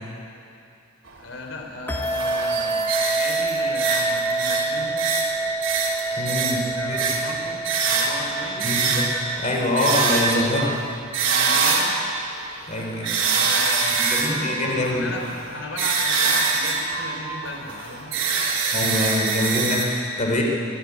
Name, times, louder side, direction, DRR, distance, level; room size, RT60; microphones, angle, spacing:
sound 1, 1.1-1.2 1.9-12.3 12.8-19.8, right 4 dB, 75° right, 3.6 m, -24 dB
voice 1, 1.2-5.0 6.1-8.7 11.2-11.9 13.2-18.2, left 2 dB, 75° left, 0 dB, 4.0 m, -36 dB
sound 2, 1.9-10.0, right 3 dB, 10° left, 1.6 m, -28 dB
sound 3, 1.9-4.7 5.6-6.1, right 4 dB, 20° right, 5.3 m, -46 dB
voice 2, 6.2-7.1 8.6-9.1 9.4-10.8 12.7-13.1 14.1-15.1 18.7-20.4, left 1 dB, 40° left, -1 dB, 3.7 m, -24 dB
24.0 x 12.5 x 9.5 m, 2.5 s
head